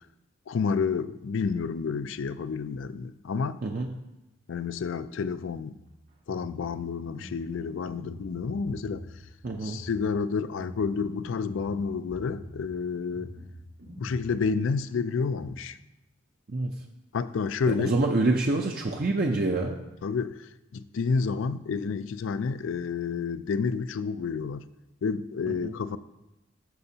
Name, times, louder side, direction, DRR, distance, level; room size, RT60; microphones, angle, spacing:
voice 1, 0.5-3.6 4.5-5.8 6.3-9.0 9.6-13.3 14.0-15.8 17.1-18.0 20.0-20.4 20.7-24.7 25.0-26.0, left 5 dB, 75° left, 0.4 m, -30 dB
sound 1, 5.8-15.5, equal, 85° right, 3.5 m, -46 dB
voice 2, 9.4-9.8 16.5-16.7 17.7-19.8 25.5-25.7, right 2 dB, 45° right, 0.5 m, -26 dB
13.0 x 6.8 x 2.8 m
head